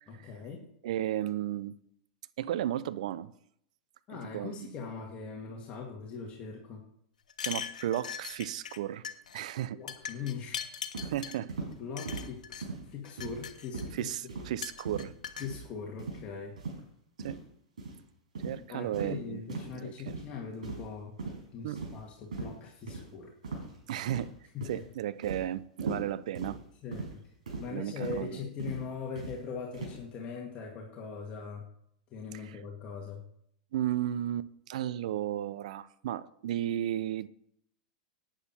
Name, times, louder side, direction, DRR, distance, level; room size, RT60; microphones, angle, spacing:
voice 1, 0.1-0.7 4.1-6.8 9.7-10.7 11.2-11.3 11.8-14.1 15.4-16.5 18.7-21.2 21.5-23.3 24.5-24.8 26.8-27.0 27.6-31.7 32.1-33.2, left 5 dB, 35° left, 2.1 m, -41 dB
voice 2, 0.8-1.7 2.4-3.3 4.1-4.7 7.4-9.0 9.3-9.8 11.0-11.5 13.9-15.1 17.2-17.4 18.4-19.4 19.7-20.2 21.6-21.8 23.9-24.4 24.7-26.6 27.7-28.4 32.5-32.6 33.7-37.3, right 12 dB, 70° right, 0.6 m, -34 dB
sound 1, 7.3-8.8 9.0-9.4 9.9-11.4 12.0-12.6 13.1-14.1 14.6-15.5, left 7 dB, 90° left, 1.2 m, -40 dB
sound 2, 10.9-11.1 11.5-11.7 12.0-12.3 12.6-12.8 13.2-13.5 13.7-13.9 14.3-14.5 14.8-15.1 15.4-15.6 16.0-16.2 16.6-16.8 17.2-17.4 17.8-17.9 18.3-18.6 18.9-19.1 19.5-19.7 20.1-20.3 20.6-20.9 21.2-21.4 21.8-22.0 22.3-22.5 22.9-23.0 23.4-23.7 24.1-24.4 24.6-24.8 25.2-25.4 25.8-26.0 26.3-26.5 26.9-27.1 27.5-27.7 28.0-28.2 28.6-28.8 29.1-29.3 29.7-30.0, right 4 dB, 85° right, 5.6 m, -38 dB
11.0 x 9.2 x 4.4 m
hypercardioid pair, 120°, 4 cm